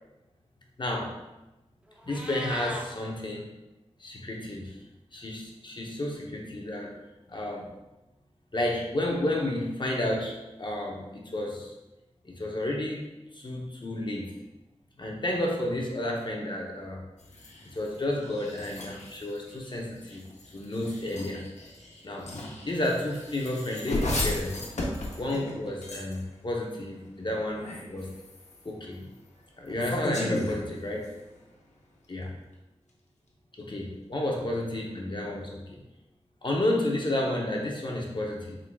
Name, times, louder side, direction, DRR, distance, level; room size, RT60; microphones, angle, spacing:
voice 1, 0.8-1.1 2.0-3.5 4.0-4.8 5.1-6.9 7.3-7.7 8.5-11.7 12.2-13.1 13.3-14.3 15.0-17.0 17.7-20.2 20.5-21.4 22.0-22.3 22.6-24.6 25.2-28.1 28.6-29.0 29.6-31.1 32.1-32.3 33.6-35.8 36.4-38.6, left 1 dB, 40° left, -1 dB, 0.6 m, -31 dB
Meow, 1.9-2.9, equal, 10° right, 0.5 m, -38 dB
sound 1, 17.2-26.4 27.4-28.7 29.7-31.3, left 1 dB, 80° left, 0.7 m, -36 dB
4.3 x 3.7 x 2.2 m, 1.0 s
wide cardioid pair, 75°, 12 cm